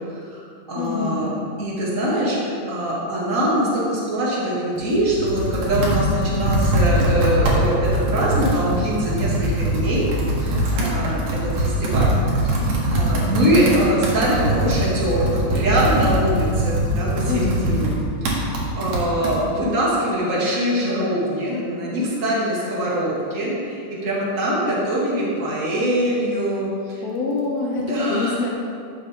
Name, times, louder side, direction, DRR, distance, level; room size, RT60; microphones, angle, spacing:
voice 1, 0.1-1.3 1.6-10.1 10.4-12.1 12.4-12.6 12.9-17.9 18.2-18.4 18.8-27.0 27.9-28.4, equal, 25° right, -7 dB, 2.3 m, -23 dB
voice 2, 0.8-1.4 17.3-17.9 27.0-28.5, left 4 dB, 65° left, -1 dB, 1.7 m, -26 dB
Computer keyboard, 4.8-19.4, right 1 dB, 70° right, 3.1 m, -22 dB
12.5 x 7.2 x 3.8 m, 2.3 s
omnidirectional pair, 3.8 m